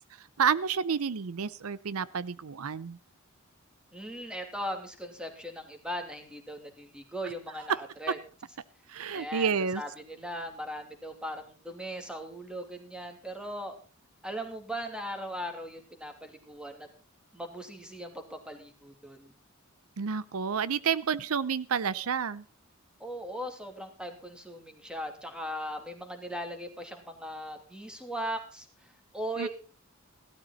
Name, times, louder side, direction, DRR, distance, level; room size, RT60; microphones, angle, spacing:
voice 1, 0.4-3.0 8.9-9.8 20.0-22.4 29.4-29.5, right 6 dB, 75° right, 18 dB, 0.6 m, -30 dB
voice 2, 3.9-8.2 9.1-13.8 14.2-16.9 17.3-19.3 23.0-28.7 29.1-29.5, equal, 5° right, 5 dB, 2.8 m, -39 dB
16.0 x 13.0 x 4.1 m, 0.36 s
head